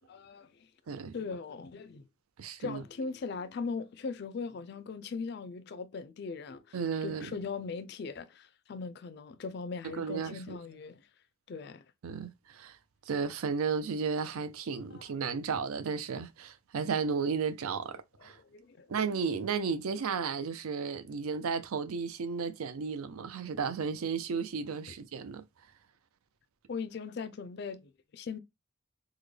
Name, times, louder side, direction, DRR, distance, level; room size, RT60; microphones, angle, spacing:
voice 1, 0.1-0.7 1.1-2.1 2.6-11.0 11.5-11.8 14.9-15.0 18.4-19.0 26.7-27.8 28.1-28.4, left 4 dB, 50° left, 0.3 m, -39 dB
voice 2, 2.4-2.8 6.7-7.4 9.8-10.6 12.0-12.8 13.1-18.4 18.9-25.4, right 5 dB, 85° right, 0.5 m, -34 dB
3.6 x 2.1 x 3.2 m
head